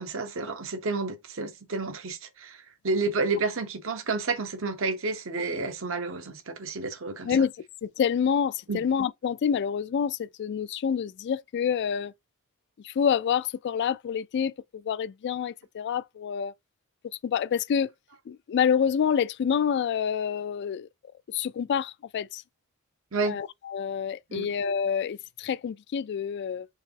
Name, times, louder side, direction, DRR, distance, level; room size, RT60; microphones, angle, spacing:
voice 1, 0.0-7.3 8.7-8.8 23.1-23.4 24.3-24.5, right 3 dB, 65° right, 1.0 m, -30 dB
voice 2, 7.8-12.1 12.8-16.5 17.2-17.9 18.3-20.9 21.3-22.4 23.2-26.7, left 7 dB, 55° left, 0.3 m, -27 dB
4.7 x 3.7 x 2.8 m
head